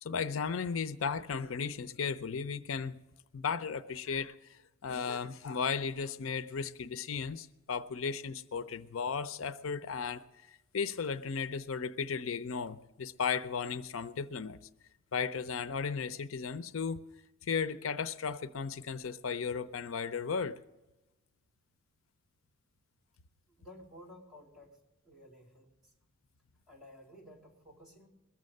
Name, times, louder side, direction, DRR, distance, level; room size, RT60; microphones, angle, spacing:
voice 1, 0.0-3.0 3.3-4.3 4.8-14.6 15.1-17.0 17.5-20.6, left 5 dB, 80° left, 0.6 m, -35 dB
voice 2, 23.6-24.8 25.0-25.7 26.7-28.1, left 1 dB, ahead, 3.5 m, -54 dB
21.0 x 7.4 x 6.6 m
head